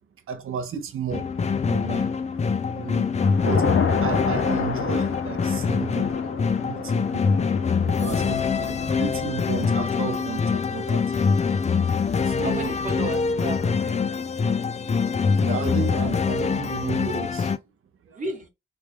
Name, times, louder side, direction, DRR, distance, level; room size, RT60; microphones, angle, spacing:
voice 1, 0.3-1.3 1.7-2.1 2.7-3.1 3.4-3.7 4.0-6.1 6.6-7.4 7.8-11.0 12.2-12.8 15.4-17.5 18.1-18.2, right 7 dB, 85° right, 0.5 m, -33 dB
sound 1, 1.1-17.6, left 5 dB, 35° left, 0.4 m, -24 dB
Thunder / Rain, 1.6-2.1 2.6-13.7, left 5 dB, 75° left, 0.6 m, -32 dB
voice 2, 12.4-13.9 18.1-18.5, right 2 dB, 40° right, 1.0 m, -34 dB
3.2 x 2.2 x 3.2 m
wide cardioid pair, 130°, 21 cm